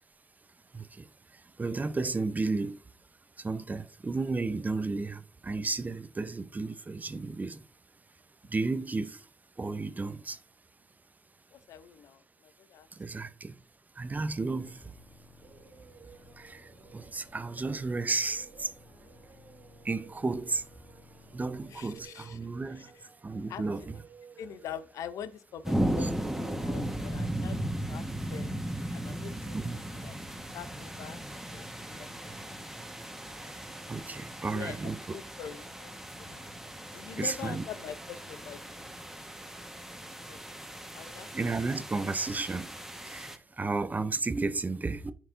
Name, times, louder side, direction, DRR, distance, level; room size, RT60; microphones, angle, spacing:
voice 1, 0.7-1.0 1.6-2.8 3.4-7.6 8.5-9.2 9.6-10.4 13.0-13.6 14.0-14.8 16.4-16.6 16.9-18.7 19.8-20.6 21.3-22.9 23.2-24.0 26.0-26.1 29.5-29.8 33.5-33.6 33.9-35.0 37.2-37.6 41.3-42.7 43.0-45.1, right 3 dB, 30° right, 0.7 m, -33 dB
voice 2, 11.5-13.3 21.7-22.4 22.8-23.0 23.5-23.6 24.4-26.1 26.4-28.6 28.9-29.7 29.9-30.2 30.5-32.1 32.4-32.6 33.0-33.2 34.5-35.9 36.3-36.4 36.9-38.9 40.3-40.4 40.9-41.3, left 8 dB, 75° left, 0.6 m, -44 dB
sound 1, 14.1-22.1, left 3 dB, 30° left, 2.1 m, -57 dB
Singing, 15.4-24.8, right 7 dB, 75° right, 2.6 m, -56 dB
sound 2, 25.6-43.4, right 1 dB, 5° right, 1.4 m, -37 dB
10.0 x 4.5 x 2.6 m
hypercardioid pair, 50°, 6 cm